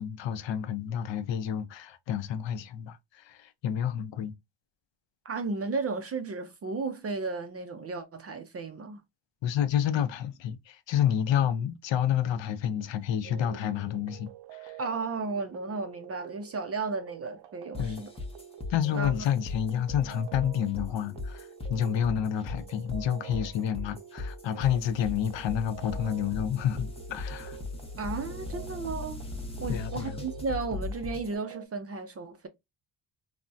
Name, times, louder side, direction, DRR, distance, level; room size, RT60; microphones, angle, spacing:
voice 1, 0.0-4.3 9.4-14.8 17.8-18.0 18.7-27.6 29.7-30.2, left 9 dB, 65° left, 0.6 m, -29 dB
voice 2, 5.3-9.0 14.8-18.1 18.9-19.1 28.0-29.2 29.6-32.5, right 4 dB, 35° right, 0.4 m, -34 dB
sound 1, 13.2-31.7, right 11 dB, 75° right, 0.6 m, -48 dB
sound 2, 17.7-31.3, left 3 dB, 10° left, 0.6 m, -38 dB
3.4 x 2.1 x 2.5 m
cardioid pair, 125°, 48 cm